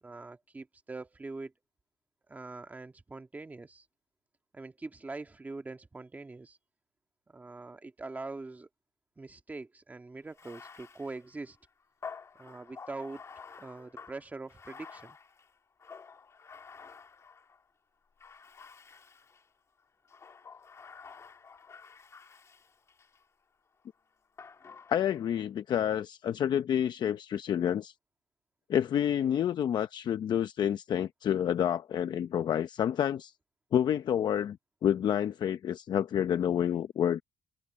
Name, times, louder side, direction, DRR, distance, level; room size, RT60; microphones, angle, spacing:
voice 1, 0.0-1.5 2.3-3.8 4.5-6.6 7.3-8.7 9.2-11.6 12.4-13.2 13.6-15.2, right 3 dB, 15° right, 1.7 m, -43 dB
Bathtub (filling or washing), 10.3-17.6 18.2-19.5 20.0-23.2 24.4-25.4, left 5 dB, 30° left, 2.2 m, -50 dB
voice 2, 24.9-27.9 28.7-33.3 33.7-34.6 34.8-37.2, left 9 dB, 50° left, 0.7 m, -28 dB
cardioid pair, 125°, 9 cm